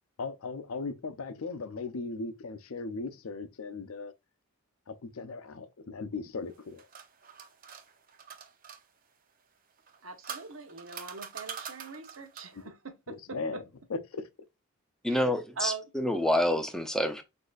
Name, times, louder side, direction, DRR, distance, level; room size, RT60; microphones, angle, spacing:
voice 1, 0.2-4.1 4.9-6.9 12.5-12.6 13.1-13.6 13.9-14.3, left 3 dB, 75° left, 0.5 m, -37 dB
sound 1, 6.5-8.8 9.8-12.6, right 7 dB, 40° right, 0.7 m, -44 dB
voice 2, 10.0-13.6 15.1-15.2 15.6-15.8, right 5 dB, 70° right, 0.9 m, -41 dB
voice 3, 15.0-17.2, left 1 dB, ahead, 0.5 m, -28 dB
6.3 x 2.7 x 2.4 m
head